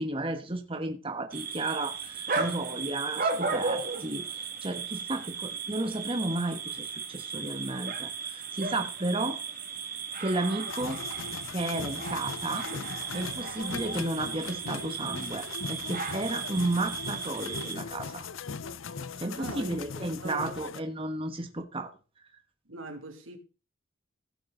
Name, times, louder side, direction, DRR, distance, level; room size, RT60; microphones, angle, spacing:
voice 1, 0.0-9.4 10.2-11.0 11.5-12.7 13.1-18.3 19.2-21.9, right 2 dB, 30° right, 1.5 m, -33 dB
sound 1, 1.3-17.8, right 5 dB, 45° right, 2.2 m, -35 dB
sound 2, 10.7-20.8, left 5 dB, 85° left, 0.7 m, -39 dB
voice 2, 19.3-19.7 20.2-20.7 22.6-23.4, right 2 dB, 85° right, 2.7 m, -40 dB
16.5 x 7.7 x 4.0 m
head